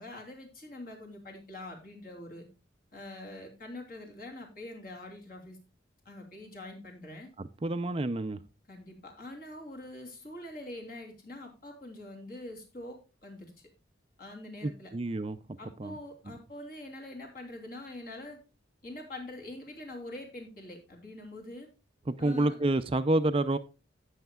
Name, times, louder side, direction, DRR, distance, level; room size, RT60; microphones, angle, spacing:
voice 1, 0.0-2.5 2.9-5.6 6.0-7.3 8.7-13.5 14.2-14.9 15.6-18.4 18.8-21.7 22.2-22.6, left 1 dB, 50° left, 3.2 m, -44 dB
voice 2, 7.6-8.4 14.6-15.4 15.8-15.9 22.1-23.6, right 2 dB, 30° right, 0.4 m, -28 dB
17.0 x 6.5 x 2.3 m
head